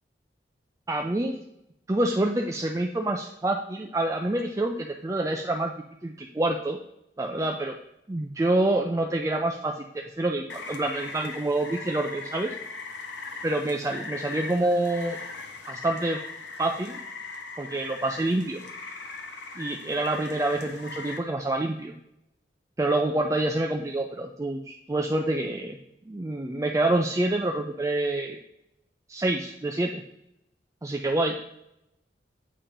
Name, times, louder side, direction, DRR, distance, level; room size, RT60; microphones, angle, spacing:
voice 1, 0.9-1.4 1.9-5.7 6.0-6.8 7.2-7.7 8.1-9.9 10.2-12.6 13.4-15.2 15.7-16.2 16.6-17.0 17.6-18.6 19.6-21.9 22.8-25.8 26.1-28.4 29.1-30.0 30.8-31.3, right 2 dB, 20° right, 2 dB, 0.4 m, -27 dB
Rain, 10.5-21.2, left 4 dB, 90° left, 0.9 m, -40 dB
8.6 x 2.9 x 5.1 m, 0.81 s
head